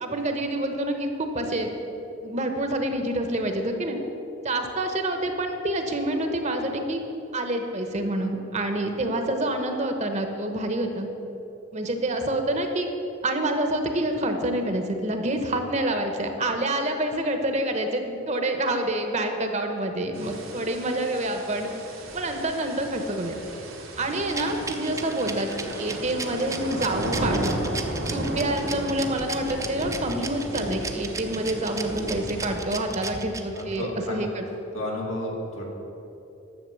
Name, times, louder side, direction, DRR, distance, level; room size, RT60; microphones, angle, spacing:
voice 1, 0.0-1.7 2.2-4.0 4.4-7.0 7.3-11.1 11.7-12.9 13.2-21.7 22.1-23.3 24.0-25.5 25.8-27.6 28.0-34.4, right 1 dB, 35° right, 5 dB, 1.0 m, -27 dB
sound 1, 20.1-32.6, right 1 dB, 90° right, 1.9 m, -34 dB
Rattle, 24.3-33.8, right 4 dB, 15° right, 0.6 m, -35 dB
voice 2, 32.9-33.2 33.5-34.3 34.7-35.6, left 1 dB, 80° left, -2 dB, 2.4 m, -32 dB
11.0 x 7.0 x 6.9 m, 2.9 s
head